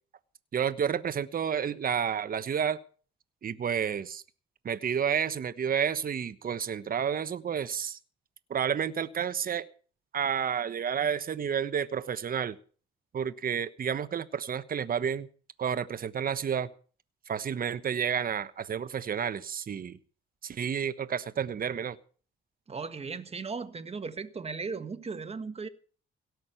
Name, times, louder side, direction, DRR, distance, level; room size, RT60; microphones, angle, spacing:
voice 1, 0.5-2.8 3.4-4.2 4.6-8.0 8.5-9.6 10.1-12.6 13.1-15.3 15.6-16.7 17.3-20.0 20.4-22.0, right 7 dB, 45° right, 1.2 m, -30 dB
voice 2, 22.7-25.7, right 4 dB, 30° right, 1.5 m, -37 dB
17.5 x 6.4 x 9.1 m
cardioid pair, 90°, 20 cm